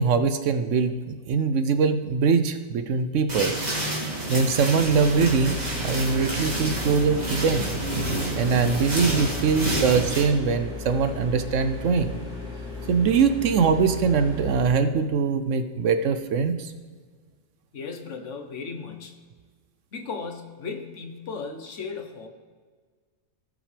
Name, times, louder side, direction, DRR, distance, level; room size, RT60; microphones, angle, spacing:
voice 1, 0.0-3.5 4.3-5.6 5.8-7.7 8.3-12.2 12.9-16.7, right 5 dB, 70° right, 9 dB, 1.0 m, -22 dB
sound 1, 3.3-10.2, right 1 dB, 30° right, 2.2 m, -29 dB
sound 2, 4.8-14.7, left 3 dB, 5° right, 2.7 m, -36 dB
voice 2, 17.7-19.2 19.9-22.3, left 4 dB, 65° left, 5 dB, 1.3 m, -36 dB
18.0 x 6.1 x 3.4 m, 1.5 s
omnidirectional pair, 1.4 m